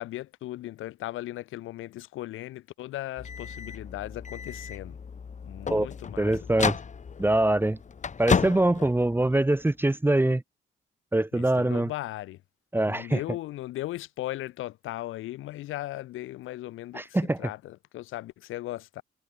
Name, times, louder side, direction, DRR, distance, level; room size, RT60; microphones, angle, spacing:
voice 1, 0.0-5.0 5.4-6.3 8.8-8.9 11.3-12.4 12.9-19.0, left 15 dB, 90° left, 6.2 m, -37 dB
sound 1, 3.2-9.7, left 6 dB, 35° left, 1.8 m, -33 dB
voice 2, 6.2-6.8 7.2-7.8 8.2-10.4 11.1-11.9 12.7-13.2 16.9-17.5, right 1 dB, 10° right, 1.6 m, -24 dB
cardioid pair, 90°, 20 cm